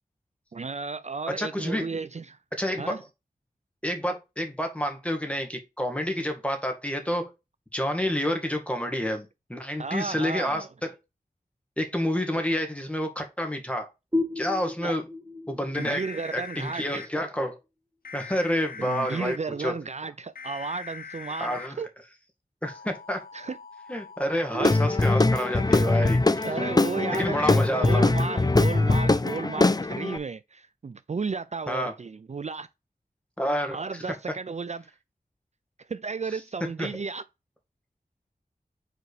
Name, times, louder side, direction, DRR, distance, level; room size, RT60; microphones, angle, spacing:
voice 1, 0.5-2.4 2.8-3.0 9.8-10.7 12.3-12.4 14.8-15.0 15.8-17.1 18.8-21.9 23.3-23.6 24.5-24.7 26.4-32.7 33.7-34.9 35.9-37.2, right 4 dB, 50° right, 0.4 m, -33 dB
voice 2, 1.4-2.0 2.6-3.0 3.8-7.3 7.7-10.7 11.8-13.9 14.4-15.0 15.5-16.0 16.3-17.6 18.1-19.7 21.4-21.8 22.6-23.2 23.9-26.5 27.2-28.1 31.7-31.9 33.4-34.0 36.8-36.9, equal, 10° left, 2.0 m, -29 dB
sound 1, 14.1-17.5, left 2 dB, 15° right, 1.4 m, -33 dB
sound 2, 15.7-17.1 18.0-19.4 20.4-21.7 22.6-28.2, left 5 dB, 75° left, 1.0 m, -43 dB
Guitar / Drum, 24.6-30.2, left 2 dB, 25° left, 0.5 m, -22 dB
5.0 x 4.5 x 4.9 m
wide cardioid pair, 50°, 15 cm